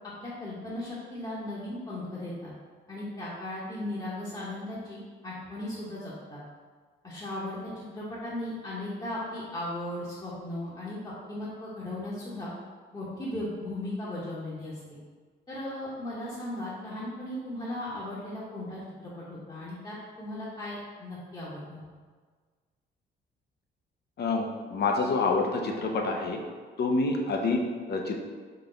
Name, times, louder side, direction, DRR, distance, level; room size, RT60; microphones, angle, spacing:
voice 1, 0.2-2.5 2.9-6.4 7.0-12.5 12.9-15.0 15.5-21.8, left 1 dB, 20° left, -8 dB, 1.1 m, -37 dB
voice 2, 24.2-26.4 26.8-27.6 27.9-28.2, left 3 dB, 55° left, 2 dB, 0.7 m, -27 dB
3.9 x 3.4 x 3.9 m, 1.5 s
cardioid pair, 90°, 20 cm